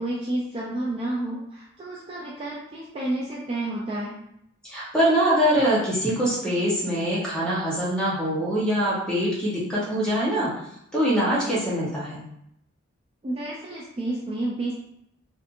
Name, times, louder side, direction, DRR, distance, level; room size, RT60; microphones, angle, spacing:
voice 1, 0.0-4.2 13.2-14.7, right 1 dB, 25° right, -5 dB, 0.3 m, -30 dB
voice 2, 4.6-10.5 10.9-12.2, equal, 5° left, -8 dB, 0.8 m, -23 dB
2.6 x 2.5 x 2.5 m, 0.78 s
head